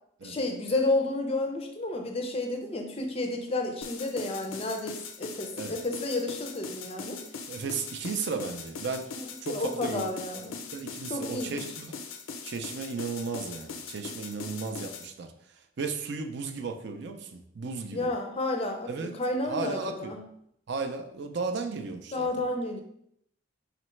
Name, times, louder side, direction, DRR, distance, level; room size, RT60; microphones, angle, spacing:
voice 1, 0.2-7.2 9.1-10.6 11.1-11.7 17.9-20.2 22.1-22.8, left 2 dB, 30° left, 3 dB, 0.4 m, -31 dB
sound 1, 3.8-15.1, left 5 dB, 85° left, 0.5 m, -41 dB
voice 2, 7.5-9.1 9.4-10.1 10.7-12.0 12.4-15.3 15.8-18.1 18.9-19.1 19.4-20.1 20.7-22.3, right 4 dB, 55° right, 5 dB, 0.4 m, -34 dB
4.0 x 3.2 x 3.1 m, 0.73 s
head